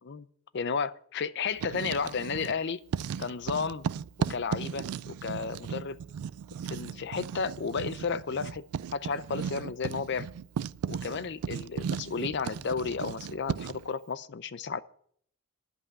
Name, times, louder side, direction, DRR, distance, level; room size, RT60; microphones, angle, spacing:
voice 1, 0.5-2.8 3.2-3.9 4.2-6.0 6.7-8.6 8.9-10.3 10.8-14.8, left 5 dB, 50° left, 0.5 m, -33 dB
Writing, 1.5-2.6 2.9-13.9, right 7 dB, 85° right, 0.3 m, -36 dB
11.0 x 5.5 x 8.7 m
head